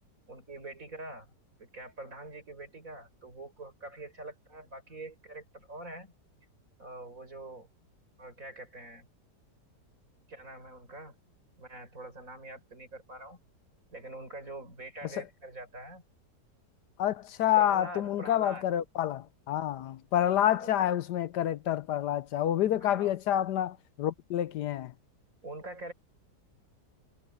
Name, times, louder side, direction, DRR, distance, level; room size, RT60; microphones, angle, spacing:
voice 1, 0.3-1.3 1.6-6.1 6.8-7.7 8.2-9.1 10.3-11.1 11.6-13.4 13.9-16.0 17.6-18.7 20.3-20.7 22.8-23.1 25.4-25.9, right 1 dB, 50° right, 6.7 m, -44 dB
voice 2, 17.0-24.9, left 11 dB, 75° left, 1.3 m, -28 dB
omnidirectional pair, 1.9 m